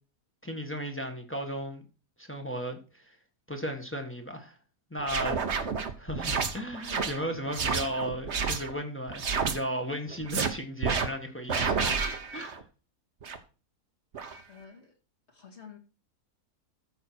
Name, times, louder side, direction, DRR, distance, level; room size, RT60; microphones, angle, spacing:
voice 1, 0.4-1.8 2.2-3.2 3.5-4.6 4.9-5.4 6.0-12.0 12.3-12.6, equal, 10° left, 1.4 m, -35 dB
sound 1, 5.0-8.7 9.1-9.6 10.1-10.5 10.8-11.1 11.5-12.6 13.2-13.4 14.1-14.4, right 5 dB, 45° right, 1.4 m, -30 dB
voice 2, 14.5-14.9 15.3-15.8, left 6 dB, 45° left, 2.4 m, -49 dB
14.0 x 5.6 x 4.6 m
omnidirectional pair, 1.7 m